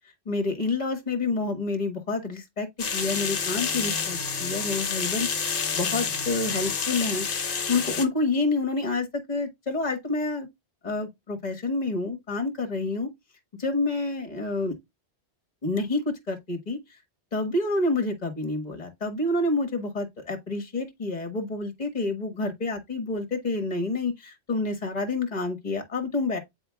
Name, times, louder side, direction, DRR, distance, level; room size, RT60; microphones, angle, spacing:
voice 1, 0.2-2.7 2.9-5.3 5.7-7.2 7.7-10.5 10.8-13.1 13.6-14.8 15.6-16.8 17.3-26.4, left 3 dB, 40° left, 1.7 m, -28 dB
sound 1, 2.8-8.0, left 5 dB, 55° left, 1.1 m, -29 dB
10.0 x 4.1 x 2.3 m
omnidirectional pair, 1.1 m